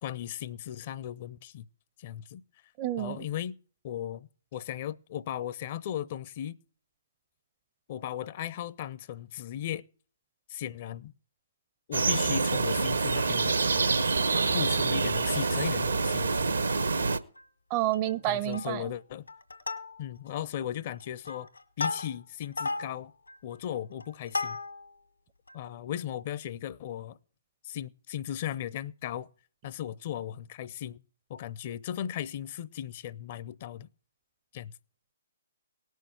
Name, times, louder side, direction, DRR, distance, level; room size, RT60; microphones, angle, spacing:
voice 1, 0.0-1.7 2.0-2.4 3.0-3.5 3.8-6.6 7.9-9.8 10.5-11.1 11.9-13.6 14.5-16.5 18.3-19.3 20.0-21.5 21.8-23.1 23.4-24.6 25.5-27.2 27.6-29.3 29.6-31.0 31.3-33.9 34.5-34.7, left 11 dB, 40° left, 0.6 m, -36 dB
voice 2, 2.8-3.3 17.7-18.9, right 13 dB, 30° right, 0.6 m, -29 dB
sound 1, 11.9-17.2, right 4 dB, 70° right, 0.9 m, -26 dB
Plucked string instrument, 14.1-14.9 15.4-15.5 15.7-15.9 16.4-17.0 17.4-17.5 17.8-18.2 18.5-18.9 19.3-20.3 20.9-25.0 25.5-25.6, left 3 dB, 85° left, 1.8 m, -37 dB
18.5 x 6.4 x 8.0 m
figure-of-eight pair, 130°, 0 cm